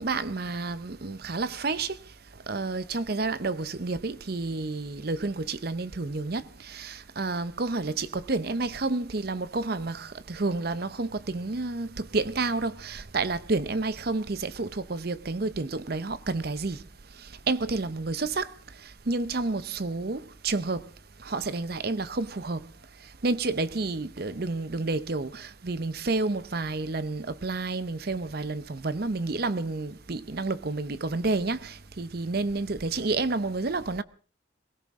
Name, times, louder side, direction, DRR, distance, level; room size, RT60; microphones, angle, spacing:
voice 1, 0.0-1.9 2.5-6.4 6.7-16.8 17.5-18.5 19.1-20.8 21.3-22.6 23.2-34.0, right 3 dB, 50° right, 0.7 m, -30 dB
22.5 x 17.0 x 3.7 m
head